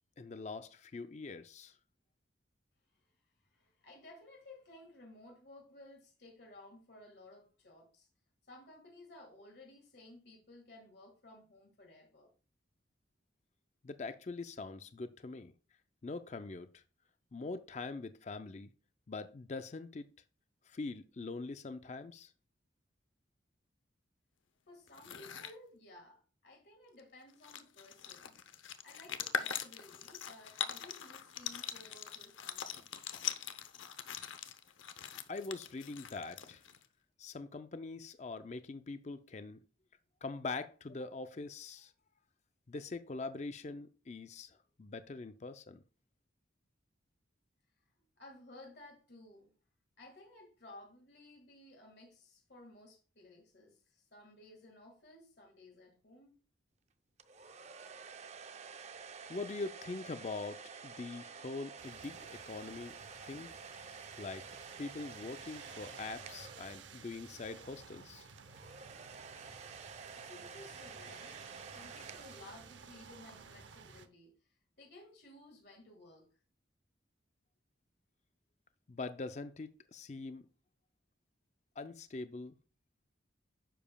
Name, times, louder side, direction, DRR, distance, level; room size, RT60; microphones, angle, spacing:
voice 1, 0.2-1.7 13.8-15.5 16.0-16.8 17.3-18.7 19.1-20.1 20.7-22.3 35.3-36.6 37.2-39.6 40.2-41.9 42.7-45.8 59.3-62.9 63.2-63.5 64.2-68.3 78.9-80.5 81.8-82.5, left 3 dB, 35° left, 0.4 m, -43 dB
voice 2, 3.4-8.1 8.5-12.3 24.7-28.4 28.8-33.2 48.2-49.5 50.0-56.3 70.1-71.4 71.7-76.3, left 2 dB, 55° left, 1.8 m, -56 dB
sound 1, 24.9-25.5 27.0-27.1 27.3-36.8, left 8 dB, 90° left, 0.7 m, -42 dB
sound 2, 57.2-67.3 68.4-73.1, right 5 dB, 35° right, 0.5 m, -50 dB
sound 3, 61.8-74.1, right 5 dB, 75° right, 0.7 m, -55 dB
10.0 x 7.1 x 2.2 m
head